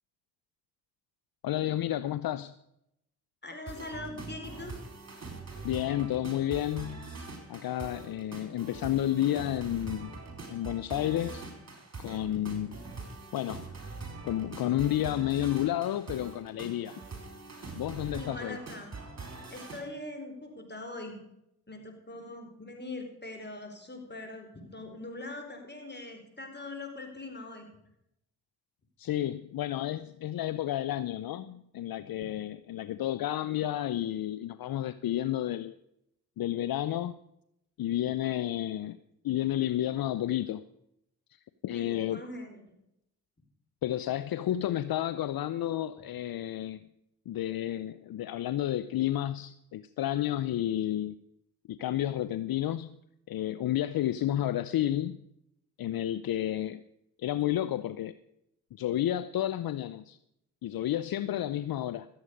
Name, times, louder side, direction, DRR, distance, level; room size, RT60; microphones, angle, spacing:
voice 1, 1.4-2.5 5.6-7.1 7.5-10.2 10.5-11.5 12.0-12.8 13.3-13.7 14.2-17.0 17.8-18.6 29.0-35.7 36.4-37.1 37.8-39.0 39.2-40.6 41.6-42.2 43.8-46.9 47.3-51.1 51.7-52.9 53.3-55.2 55.8-56.8 57.2-58.2 58.7-60.2 60.6-62.1, left 12 dB, 65° left, 15 dB, 0.6 m, -31 dB
voice 2, 3.4-4.7 18.1-18.9 19.5-21.2 21.7-27.7 41.7-42.6, left 2 dB, 25° left, 4 dB, 4.3 m, -42 dB
sound 1, 3.7-19.8, right 3 dB, 40° right, 4.3 m, -43 dB
14.0 x 8.1 x 6.5 m, 0.80 s
supercardioid pair, 45°, 38 cm